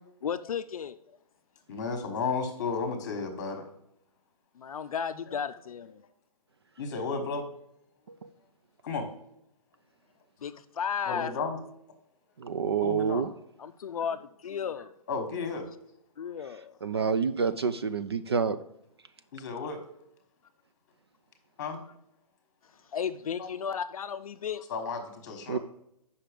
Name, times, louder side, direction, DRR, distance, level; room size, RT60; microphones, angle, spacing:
voice 1, 0.2-1.0 4.6-6.0 10.4-11.3 13.6-14.9 16.2-16.8 22.9-24.6, left 7 dB, 65° left, 10 dB, 0.5 m, -34 dB
voice 2, 1.7-3.6 5.3-5.4 6.8-7.4 8.8-9.1 11.0-11.6 12.8-13.2 15.1-15.7 19.3-19.8 21.6-21.8 23.4-23.5 24.7-25.6, left 4 dB, 30° left, 6 dB, 1.3 m, -33 dB
voice 3, 12.4-13.3 16.8-18.6 25.5-25.6, right 6 dB, 40° right, 11 dB, 0.4 m, -28 dB
7.6 x 5.6 x 5.1 m, 0.77 s
hypercardioid pair, 175°, 20 cm